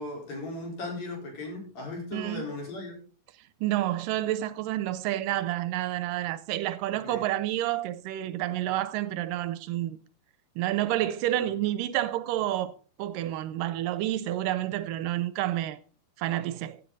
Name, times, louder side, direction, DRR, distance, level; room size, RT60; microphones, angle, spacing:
voice 1, 0.0-3.0 7.0-7.2 11.4-11.5, left 2 dB, 55° left, 5.5 m, -37 dB
voice 2, 2.1-2.4 3.6-10.0 10.6-12.7 13.0-15.8 16.2-16.8, right 14 dB, 80° right, 2.2 m, -29 dB
15.0 x 8.9 x 4.0 m
omnidirectional pair, 3.9 m